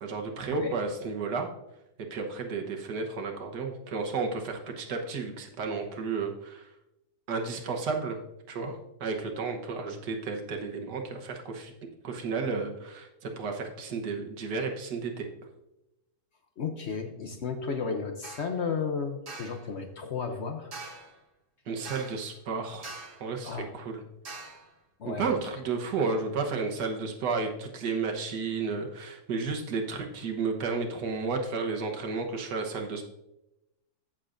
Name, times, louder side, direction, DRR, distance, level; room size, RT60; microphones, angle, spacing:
voice 1, 0.0-1.5 2.1-6.7 7.3-8.2 8.5-11.7 12.0-15.3 21.7-22.9 23.2-24.0 25.1-33.0, right 4 dB, 85° right, 2 dB, 1.7 m, -32 dB
voice 2, 16.6-20.7 23.4-23.7 25.0-25.4, left 5 dB, 55° left, 5 dB, 0.8 m, -33 dB
sound 1, 18.2-18.5 19.3-19.6 20.7-21.2 21.8-22.3 22.8-23.3 24.2-24.7, right 3 dB, 50° right, 1.7 m, -43 dB
14.5 x 6.6 x 2.6 m, 0.91 s
omnidirectional pair, 1.7 m